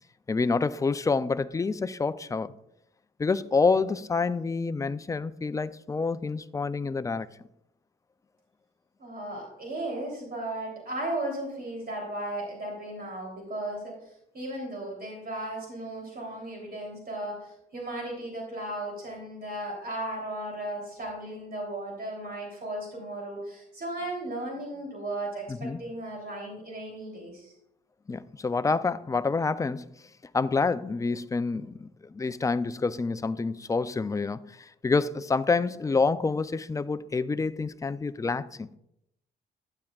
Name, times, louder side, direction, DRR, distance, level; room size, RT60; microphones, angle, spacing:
voice 1, 0.3-2.5 3.2-7.3 25.5-25.8 28.1-29.9 30.3-38.8, left 4 dB, 15° left, 0.4 m, -27 dB
voice 2, 9.0-14.0 14.3-27.5, right 1 dB, 50° right, 3.2 m, -35 dB
12.0 x 8.9 x 2.4 m
cardioid pair, 90°, 20 cm